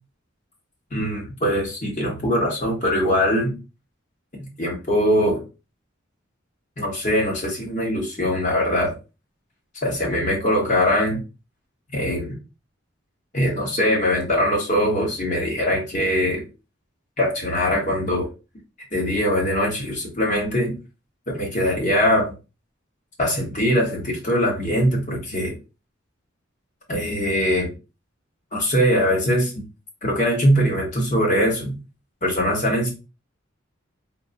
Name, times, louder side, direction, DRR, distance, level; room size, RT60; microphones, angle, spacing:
voice 1, 0.9-3.5 4.4-5.4 6.8-8.9 9.8-11.2 11.9-12.3 13.3-16.4 17.2-18.3 18.9-20.8 21.3-22.3 23.2-25.5 26.9-27.7 28.5-29.6 30.0-31.7 32.2-32.9, equal, 35° left, -1 dB, 1.1 m, -22 dB
3.7 x 2.0 x 2.5 m, 0.30 s
head